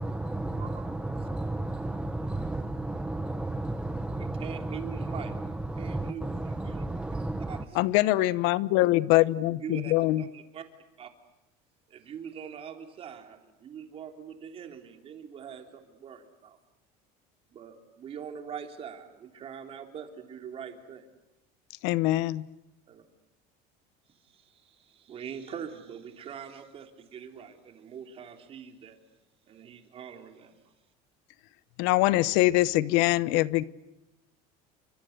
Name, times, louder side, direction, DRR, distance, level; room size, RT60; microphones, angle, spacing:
voice 1, 0.0-7.6, right 2 dB, 5° right, 8 dB, 0.9 m, -33 dB
voice 2, 4.2-5.3 5.8-6.9 7.5-7.8 8.8-8.9 9.3-10.6 11.0-11.1 11.9-16.6 17.5-21.1 22.9-23.0 24.2-29.0 29.5-30.5, right 8 dB, 30° right, 5 dB, 3.3 m, -43 dB
voice 3, 7.7-10.2 21.8-22.5 31.8-33.6, left 17 dB, 75° left, 18 dB, 1.0 m, -23 dB
29.5 x 25.0 x 8.0 m, 0.92 s
cardioid pair, 170°, 18 cm